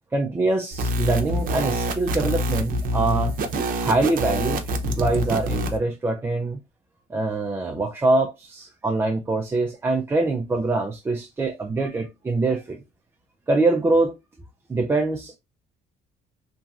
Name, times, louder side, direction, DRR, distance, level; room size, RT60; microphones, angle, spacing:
voice 1, 0.1-3.3 3.8-6.6 7.1-12.8 13.5-14.1 14.7-15.4, right 2 dB, 15° right, 0.3 m, -24 dB
sound 1, 0.7-5.8, equal, 55° right, 0.6 m, -26 dB
2.9 x 2.5 x 2.3 m
cardioid pair, 110°, 17 cm